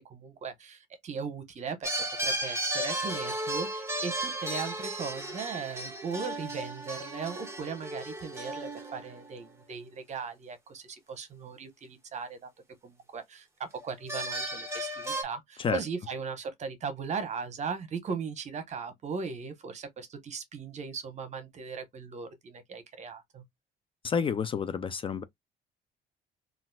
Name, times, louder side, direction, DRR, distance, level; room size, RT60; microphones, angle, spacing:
voice 1, 0.0-12.5 12.8-23.4, right 5 dB, 45° right, 1.0 m, -38 dB
sound 1, 1.8-9.5 13.7-15.2, right 1 dB, 15° right, 1.1 m, -34 dB
voice 2, 24.0-25.2, left 6 dB, 30° left, 0.4 m, -29 dB
3.9 x 2.5 x 2.3 m
cardioid pair, 110°, 17 cm